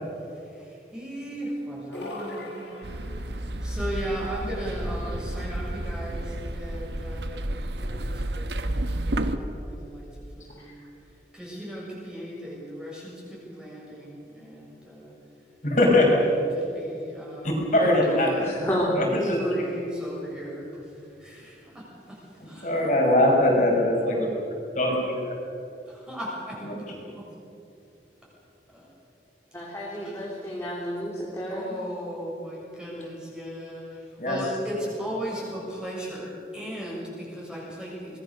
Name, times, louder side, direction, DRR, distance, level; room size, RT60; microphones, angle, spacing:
voice 1, 0.4-2.8 3.6-10.1 10.4-10.7 11.3-15.1 16.5-18.6 19.0-22.7 26.0-27.2 28.7-28.9 30.0-30.2 31.5-38.2, equal, 5° right, -5 dB, 6.9 m, -37 dB
sound 1, 1.9-3.5, equal, 85° left, 7.3 m, -38 dB
sound 2, 2.8-9.4, right 1 dB, 85° right, 1.2 m, -31 dB
voice 2, 15.6-16.2 17.4-18.3 19.0-19.4 22.6-24.1 24.8-24.9 26.6-27.0 34.2-34.4, left 1 dB, 45° left, -2 dB, 5.5 m, -21 dB
voice 3, 18.4-19.1 29.5-31.7, equal, 15° left, -5 dB, 3.4 m, -30 dB
25.0 x 20.0 x 6.7 m, 2.7 s
head